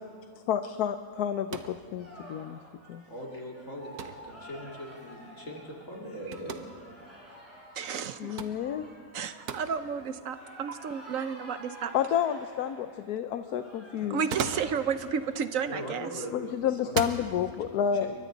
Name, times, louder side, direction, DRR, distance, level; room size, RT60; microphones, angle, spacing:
voice 1, 0.5-2.6 2.9-3.0 8.2-8.8 11.9-14.2 16.3-18.1, left 9 dB, 90° left, 9 dB, 1.2 m, -30 dB
sound 1, 1.5-1.8 4.0-4.3 6.3-6.7 8.4-8.6 9.5-9.7 10.7-10.8 14.1-14.8 15.9-16.2 16.8-17.2, right 6 dB, 85° right, 1.5 m, -35 dB
sound 2, 2.0-16.1, equal, 10° left, 7.3 m, -50 dB
voice 2, 3.0-6.7 15.6-17.6 17.9-18.1, equal, 55° left, -2 dB, 3.2 m, -41 dB
voice 3, 7.8-8.4 9.1-11.9 14.1-16.1, right 6 dB, 65° right, 11 dB, 1.1 m, -32 dB
28.0 x 23.5 x 4.0 m, 2.3 s
omnidirectional pair, 1.6 m